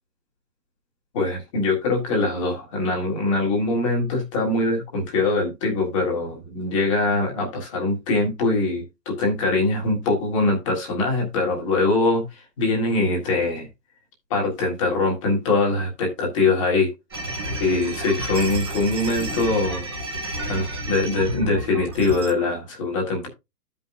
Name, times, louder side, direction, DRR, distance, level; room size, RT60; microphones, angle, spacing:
voice 1, 1.1-13.7 14.3-16.9 17.6-19.9 20.5-23.3, left 2 dB, 20° left, 1.8 m, -23 dB
sound 1, 17.1-22.3, right 1 dB, 15° right, 0.8 m, -31 dB
14.0 x 5.4 x 2.5 m
hypercardioid pair, 180°, 48 cm